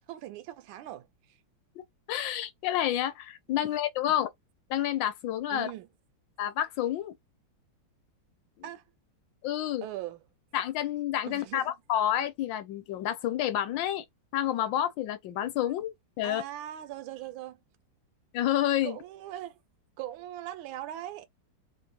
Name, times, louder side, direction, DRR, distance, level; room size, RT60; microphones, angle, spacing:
voice 1, 0.1-1.1 5.5-5.9 8.6-8.8 9.8-10.2 11.3-11.7 16.2-17.6 18.8-19.6 20.0-21.3, right 13 dB, 85° right, 1.3 m, -40 dB
voice 2, 2.1-4.3 4.7-5.7 6.4-7.1 9.4-9.9 10.5-14.0 14.3-16.4 18.3-19.0, left 12 dB, 75° left, 1.3 m, -29 dB
3.2 x 2.2 x 2.8 m
omnidirectional pair, 2.1 m